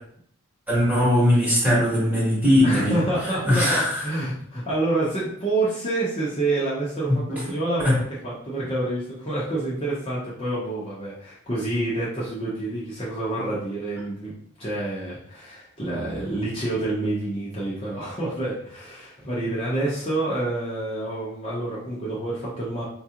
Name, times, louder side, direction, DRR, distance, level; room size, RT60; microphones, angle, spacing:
voice 1, 0.7-2.9 3.4-4.0 7.8-8.0, left 1 dB, 5° right, -7 dB, 1.3 m, -19 dB
voice 2, 2.6-22.8, right 2 dB, 25° left, -8 dB, 0.8 m, -28 dB
4.5 x 2.4 x 2.9 m, 0.64 s
head